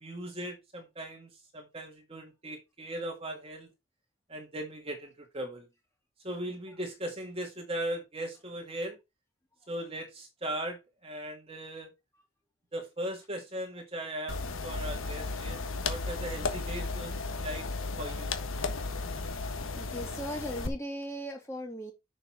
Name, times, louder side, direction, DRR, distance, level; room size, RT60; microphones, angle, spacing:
voice 1, 0.0-3.7 4.3-5.7 6.2-9.0 9.7-11.9 12.7-17.1 17.4-17.7 18.0-18.3, right 1 dB, 30° right, 1.8 m, -38 dB
sound 1, 14.3-20.7, left 3 dB, 75° left, 1.3 m, -34 dB
voice 2, 19.7-21.9, equal, 15° left, 2.2 m, -38 dB
6.8 x 5.8 x 4.4 m
head